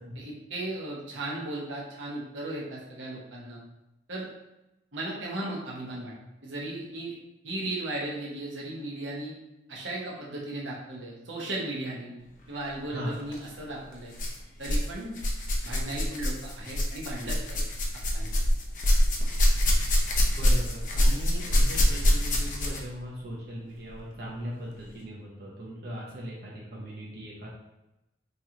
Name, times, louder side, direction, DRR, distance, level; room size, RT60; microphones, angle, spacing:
voice 1, 0.2-3.6 4.1-4.3 4.9-6.1 6.4-7.1 7.4-9.3 9.7-12.1 12.5-14.1 14.6-15.2 15.6-17.6 18.1-18.3, right 2 dB, 85° right, -4 dB, 1.0 m, -36 dB
sound 1, 13.2-13.4 14.1-14.9 15.1-22.9 23.9-24.0 24.8-24.9, equal, 45° left, 0.5 m, -25 dB
voice 2, 20.4-27.5, equal, 55° right, -6 dB, 0.8 m, -39 dB
3.1 x 3.0 x 3.7 m, 0.93 s
head